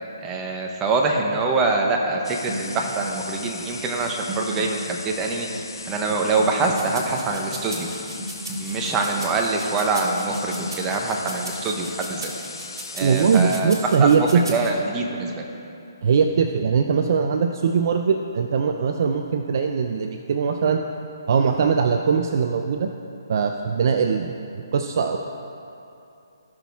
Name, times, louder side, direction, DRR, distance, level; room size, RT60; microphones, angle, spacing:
voice 1, 0.2-5.5 5.9-7.9 8.6-12.3 12.9-13.7 14.0-15.4, right 3 dB, 15° right, 1 dB, 1.0 m, -24 dB
sound 1, 2.2-13.6, left 4 dB, 85° left, 0.9 m, -38 dB
sound 2, 2.5-12.2, right 1 dB, 35° right, 1.5 m, -38 dB
sound 3, 6.7-14.7, right 2 dB, 85° right, 2.1 m, -39 dB
voice 2, 13.0-14.6 16.0-20.8 21.3-22.9 23.3-25.2, right 6 dB, 50° right, 5 dB, 0.5 m, -21 dB
17.5 x 6.1 x 3.6 m, 2.8 s
hypercardioid pair, 155°, 2 cm